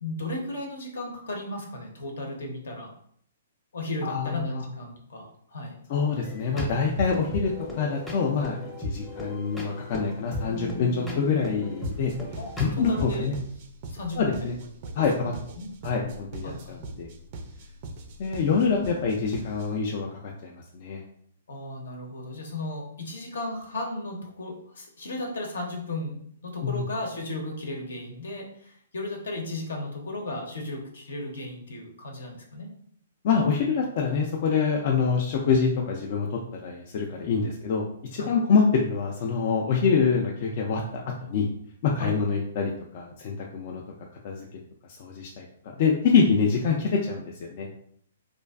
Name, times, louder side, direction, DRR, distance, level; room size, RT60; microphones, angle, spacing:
voice 1, 0.0-2.9 3.7-5.8 12.4-13.3 13.9-14.4 15.2-15.7 16.4-16.8 21.5-32.7 38.2-38.3 42.0-42.1, left 2 dB, 70° left, 1 dB, 0.7 m, -35 dB
voice 2, 4.0-4.6 5.9-8.6 8.8-12.1 12.6-13.4 14.2-14.5 15.0-15.3 15.8-17.1 18.2-21.0 26.6-26.8 33.2-37.8 38.1-41.5 41.8-43.8 44.2-44.6 44.9-47.7, left 5 dB, 50° left, 0 dB, 0.3 m, -26 dB
sound 1, 6.2-13.2, left 2 dB, 5° left, 0.6 m, -35 dB
sound 2, 11.8-19.8, right 2 dB, 45° right, 0.3 m, -42 dB
2.5 x 2.2 x 2.2 m, 0.65 s
hypercardioid pair, 125°, 0 cm